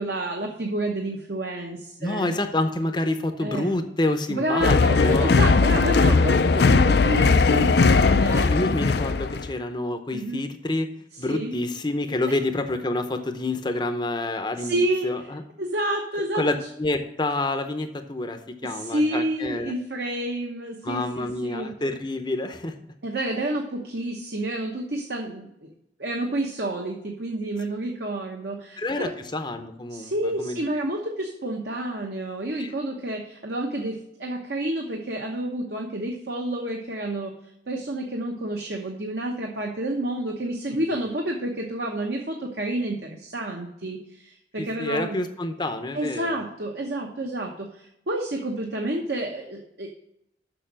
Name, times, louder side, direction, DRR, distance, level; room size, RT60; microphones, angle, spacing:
voice 1, 0.0-2.4 3.4-3.7 4.3-8.5 10.1-10.4 11.3-11.5 14.6-15.1 15.6-16.4 18.6-21.7 23.0-25.7 26.0-29.1 29.9-37.3 37.7-45.2 45.9-49.9, right 1 dB, 60° right, 1 dB, 1.1 m, -29 dB
voice 2, 2.0-5.3 8.5-10.9 11.2-15.4 16.3-19.7 20.8-22.7 28.8-30.6 32.6-32.7 40.9-41.0 44.6-46.4, left 2 dB, 25° left, 7 dB, 0.7 m, -28 dB
sound 1, 4.6-9.5, left 4 dB, 60° left, 0.5 m, -19 dB
6.8 x 6.3 x 7.4 m, 0.78 s
head